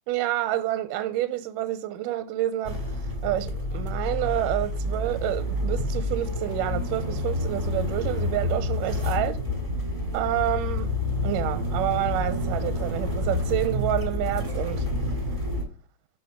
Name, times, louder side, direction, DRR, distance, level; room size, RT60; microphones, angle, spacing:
voice 1, 0.1-9.4 10.1-10.9 11.2-14.9, right 13 dB, 80° right, 2.1 m, -28 dB
sound 1, 2.6-15.6, left 2 dB, 10° right, 1.9 m, -28 dB
8.1 x 5.6 x 4.7 m
omnidirectional pair, 4.0 m